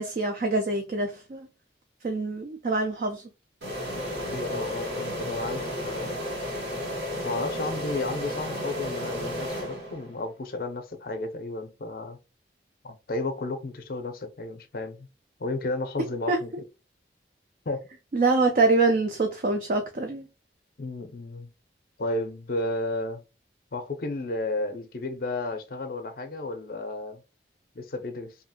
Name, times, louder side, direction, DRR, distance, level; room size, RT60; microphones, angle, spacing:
voice 1, 0.0-1.5 2.0-3.2 16.3-16.4 18.1-20.2, right 3 dB, 45° right, 0.3 m, -25 dB
sound 1, 3.6-10.3, equal, 70° right, 1.5 m, -33 dB
voice 2, 4.3-6.2 7.2-12.2 12.8-15.1 15.4-16.5 17.7-17.9 20.8-21.5 22.0-23.2 23.7-27.2 27.7-28.3, left 2 dB, 55° left, 0.5 m, -33 dB
2.7 x 2.4 x 2.7 m
head